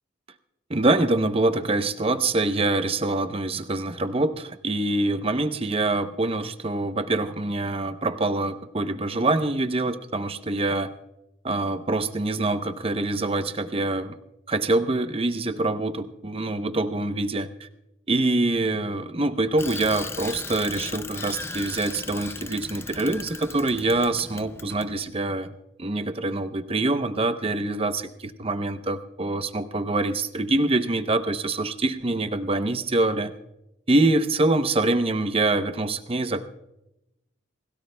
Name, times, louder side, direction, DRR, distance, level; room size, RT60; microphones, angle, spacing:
voice 1, 0.7-10.9 11.4-14.2 14.5-17.7 18.1-25.5 25.8-33.3 33.9-36.4, right 2 dB, 30° right, 10 dB, 0.7 m, -25 dB
Bicycle, 19.6-25.1, left 3 dB, 15° left, 0.4 m, -37 dB
26.5 x 17.0 x 2.2 m, 0.89 s
head